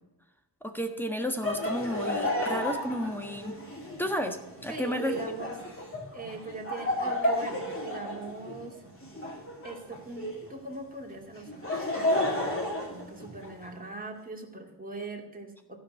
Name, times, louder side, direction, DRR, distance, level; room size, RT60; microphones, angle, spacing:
voice 1, 0.6-3.5 4.0-5.1, equal, 5° left, 5 dB, 1.4 m, -32 dB
Laughter, 1.4-10.5 11.3-13.7, left 1 dB, 30° left, 3.1 m, -32 dB
voice 2, 4.7-5.6 6.1-8.8 9.6-15.8, right 3 dB, 20° right, 0 dB, 2.3 m, -41 dB
15.0 x 5.3 x 7.6 m, 0.97 s
wide cardioid pair, 115°, 41 cm